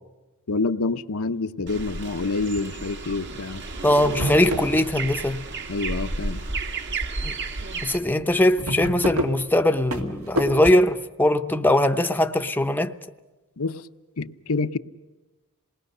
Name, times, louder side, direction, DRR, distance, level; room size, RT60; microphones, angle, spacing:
voice 1, 0.5-3.6 5.7-6.4 13.6-13.8 14.2-14.8, left 3 dB, 75° left, 0.8 m, -27 dB
sound 1, 1.7-8.0, right 3 dB, 55° right, 1.6 m, -32 dB
voice 2, 3.8-5.5 7.2-7.3 7.8-12.9, left 1 dB, 10° left, 0.7 m, -21 dB
sound 2, 4.2-5.3 5.7-6.3 6.8-7.0 7.2-7.3 7.6-7.7 8.0-10.7, equal, 85° right, 2.4 m, -29 dB
27.5 x 20.0 x 6.7 m
head